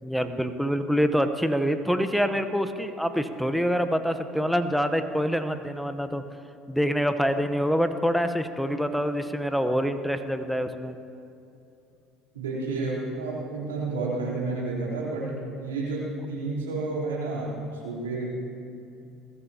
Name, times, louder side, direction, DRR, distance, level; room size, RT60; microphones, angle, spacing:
voice 1, 0.0-6.2 6.7-10.9, equal, ahead, 9 dB, 0.9 m, -26 dB
voice 2, 12.3-18.3, right 3 dB, 90° right, -6 dB, 3.6 m, -31 dB
20.5 x 15.0 x 2.9 m, 2.7 s
hypercardioid pair, 70°, 0 cm